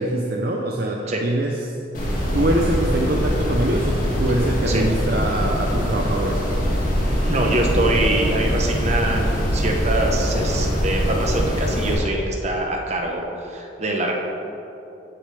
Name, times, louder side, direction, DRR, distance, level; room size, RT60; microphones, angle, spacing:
voice 1, 0.0-1.6 2.3-6.4, right 1 dB, 50° right, 0 dB, 0.6 m, -23 dB
sound 1, 1.9-11.9, equal, 45° left, 2.1 m, -22 dB
voice 2, 7.2-14.1, right 2 dB, 35° right, 1 dB, 1.1 m, -24 dB
16.0 x 6.5 x 3.4 m, 2.9 s
head